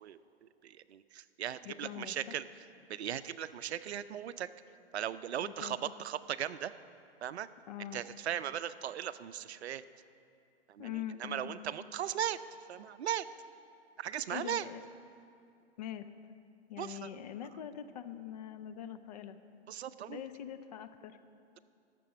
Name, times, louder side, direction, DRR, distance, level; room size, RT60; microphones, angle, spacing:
voice 1, 0.0-4.5 4.9-6.8 7.2-7.5 7.8-9.8 10.7-12.4 12.7-13.3 14.0-14.7 16.8-17.1 19.7-20.2, right 10 dB, 70° right, 14 dB, 0.5 m, -38 dB
voice 2, 1.4-2.4 5.4-5.8 7.7-8.0 10.8-11.5 14.3-14.8 15.8-16.1 16.7-19.4 20.1-21.1, left 10 dB, 40° left, 10 dB, 0.5 m, -43 dB
13.0 x 6.8 x 6.9 m, 2.5 s
hypercardioid pair, 140°, 33 cm